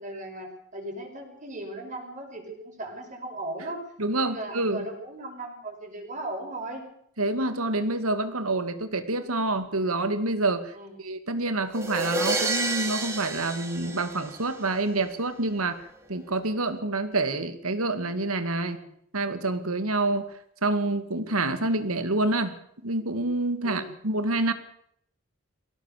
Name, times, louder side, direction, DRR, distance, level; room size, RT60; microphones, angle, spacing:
voice 1, 0.0-3.8 4.2-6.8 10.7-11.0 18.7-18.9 23.6-23.9, right 1 dB, 35° right, 2 dB, 6.0 m, -37 dB
voice 2, 4.0-4.9 7.2-10.7 11.0-15.8 16.1-18.8 19.1-20.3 20.6-22.6 22.8-24.5, right 2 dB, 85° right, 9 dB, 2.4 m, -27 dB
sound 1, 11.7-14.7, right 2 dB, 15° right, 2.8 m, -30 dB
23.0 x 17.5 x 6.9 m, 0.68 s
head